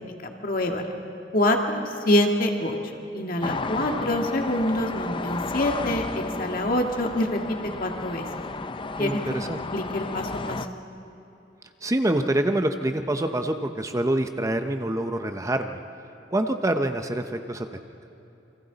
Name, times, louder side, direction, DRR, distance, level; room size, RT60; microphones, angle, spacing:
voice 1, 0.0-0.9 1.3-2.8 3.1-7.4 7.8-8.3 9.0-9.2 9.7-10.6, left 1 dB, 50° left, 2 dB, 1.9 m, -25 dB
sound 1, 3.4-10.7, left 3 dB, 30° left, 0.5 m, -33 dB
voice 2, 9.0-9.6 11.8-15.8 16.3-17.7, right 1 dB, 20° right, 7 dB, 0.7 m, -26 dB
28.5 x 24.5 x 4.0 m, 2.9 s
head